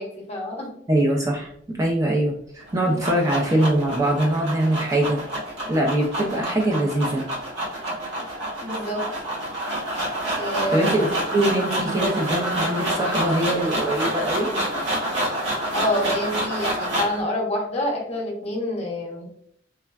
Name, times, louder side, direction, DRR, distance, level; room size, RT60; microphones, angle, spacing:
voice 1, 0.0-0.7 2.8-3.0 8.6-9.0 10.3-11.0 11.3-11.4 15.7-19.3, left 1 dB, 35° left, -2 dB, 0.8 m, -27 dB
voice 2, 0.9-1.5 1.8-5.2 5.7-7.2 10.7-14.5, right 1 dB, 20° right, 0 dB, 0.4 m, -22 dB
sound 1, 2.6-17.2, right 1 dB, 85° right, 1.1 m, -28 dB
3.3 x 2.1 x 2.3 m, 0.67 s
head